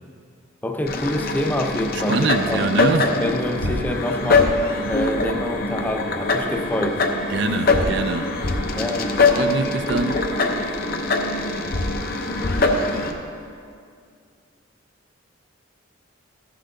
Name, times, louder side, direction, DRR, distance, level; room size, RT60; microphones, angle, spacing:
voice 1, 0.6-2.7 3.0-4.6 4.9-7.0 8.7-9.2, left 1 dB, 10° left, 4 dB, 0.5 m, -26 dB
sound 1, 0.9-13.1, left 3 dB, 50° left, 0.6 m, -23 dB
voice 2, 2.1-3.2 3.6-3.7 7.3-8.3 9.4-10.2, right 4 dB, 60° right, 10 dB, 0.4 m, -24 dB
14.5 x 5.7 x 3.8 m, 2.3 s
head